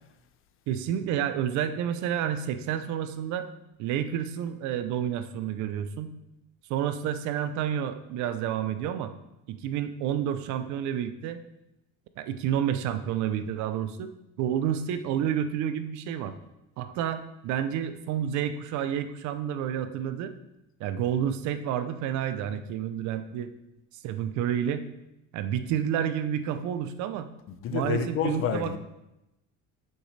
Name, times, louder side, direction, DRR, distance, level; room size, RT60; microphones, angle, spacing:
voice 1, 0.7-3.5 3.8-6.1 6.7-9.1 9.5-11.4 12.2-14.1 14.4-16.3 16.8-20.3 20.8-23.5 24.0-24.9 25.3-27.3 27.7-28.8, right 9 dB, 65° right, 11 dB, 0.6 m, -29 dB
voice 2, 27.6-28.8, left 7 dB, 45° left, 10 dB, 0.6 m, -28 dB
8.2 x 6.5 x 3.3 m, 0.91 s
cardioid pair, 155°, 32 cm